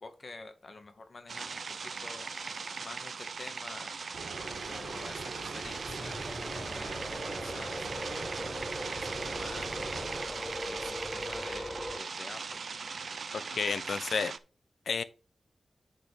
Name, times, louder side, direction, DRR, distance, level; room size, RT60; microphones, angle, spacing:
voice 1, 0.0-7.1 7.4-12.6, left 3 dB, 45° left, 1.1 m, -49 dB
sound 1, 1.3-14.4, right 5 dB, 65° right, 0.6 m, -39 dB
sound 2, 4.1-10.2, right 3 dB, 90° right, 1.5 m, -42 dB
sound 3, 5.4-12.0, left 1 dB, 5° left, 0.7 m, -40 dB
voice 2, 13.3-14.3 14.9-15.0, left 5 dB, 80° left, 0.7 m, -31 dB
10.5 x 3.8 x 5.1 m
wide cardioid pair, 125°, 0 cm